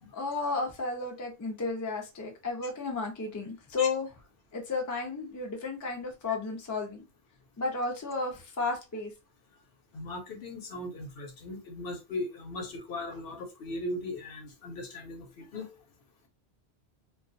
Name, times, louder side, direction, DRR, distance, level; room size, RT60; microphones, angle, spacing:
voice 1, 0.1-4.1 4.5-7.0 7.6-9.1, left 3 dB, 30° left, 0.4 m, -33 dB
voice 2, 9.9-15.7, left 2 dB, 65° left, 0.9 m, -38 dB
2.2 x 2.2 x 2.5 m
omnidirectional pair, 1.1 m